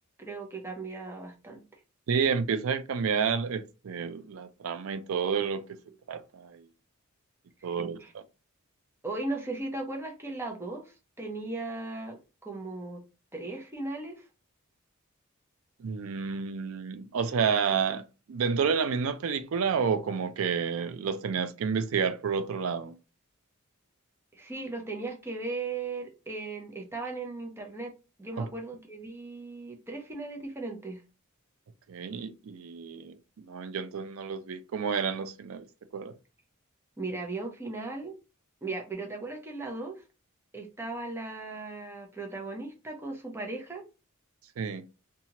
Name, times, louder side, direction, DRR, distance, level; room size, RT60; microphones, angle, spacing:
voice 1, 0.2-1.6 7.7-8.1 9.0-13.0 13.3-14.3 24.3-27.9 28.2-31.0 37.0-38.2 38.6-40.0 40.5-43.8, right 3 dB, 10° right, 0.6 m, -37 dB
voice 2, 2.1-5.6 6.1-6.6 7.6-8.2 15.8-18.0 18.3-23.0 28.4-28.5 31.9-35.7 35.9-36.1 44.6-44.8, right 6 dB, 70° right, 0.4 m, -30 dB
2.8 x 2.3 x 2.8 m
head